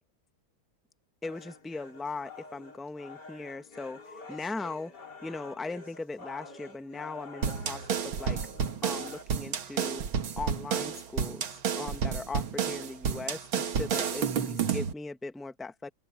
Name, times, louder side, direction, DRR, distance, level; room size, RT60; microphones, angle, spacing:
sound 1, 1.2-9.2, left 4 dB, 55° left, 4.1 m, -48 dB
voice 1, 1.2-4.0 4.3-4.9 5.2-8.4 8.8-10.0 10.4-11.4 11.8-15.9, left 3 dB, ahead, 0.5 m, -39 dB
sound 2, 7.4-14.9, right 7 dB, 80° right, 2.4 m, -31 dB
open air
omnidirectional pair, 2.2 m